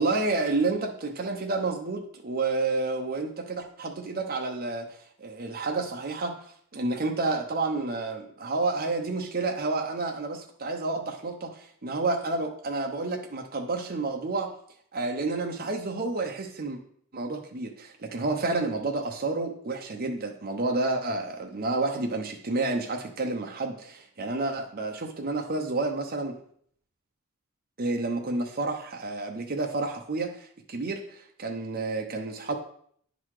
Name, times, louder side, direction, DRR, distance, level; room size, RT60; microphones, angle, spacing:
voice 1, 0.0-6.4 6.7-14.5 14.9-16.8 17.1-26.4 27.8-32.6, right 3 dB, 40° right, 2 dB, 0.7 m, -30 dB
9.7 x 4.0 x 4.8 m, 0.63 s
head